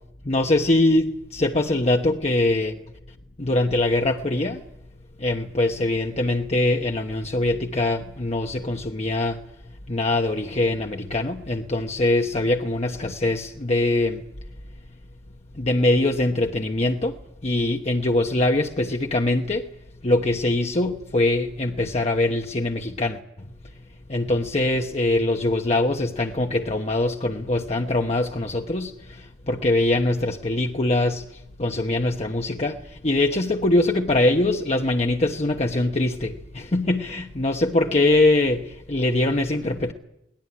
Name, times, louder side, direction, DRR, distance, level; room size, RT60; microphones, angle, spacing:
voice 1, 0.3-1.1 1.3-2.7 3.4-4.6 5.2-9.4 9.9-14.2 15.6-17.1 17.4-19.6 20.0-23.2 24.1-31.3 31.6-39.9, left 2 dB, 40° left, 1.1 m, -23 dB
22.5 x 19.0 x 9.8 m
head